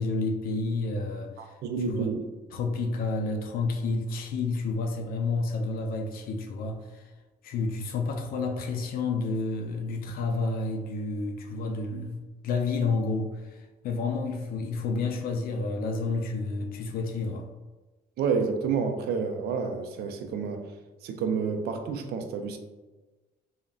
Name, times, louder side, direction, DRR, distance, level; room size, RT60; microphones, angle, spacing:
voice 1, 0.0-1.6 1.9-2.1 2.5-7.1 7.4-17.5, left 3 dB, 60° left, 4 dB, 0.4 m, -30 dB
voice 2, 1.4-2.3 18.2-20.7 21.0-22.6, right 5 dB, 70° right, 6 dB, 0.4 m, -29 dB
3.6 x 2.1 x 2.3 m, 1.2 s
cardioid pair, 110°, 17 cm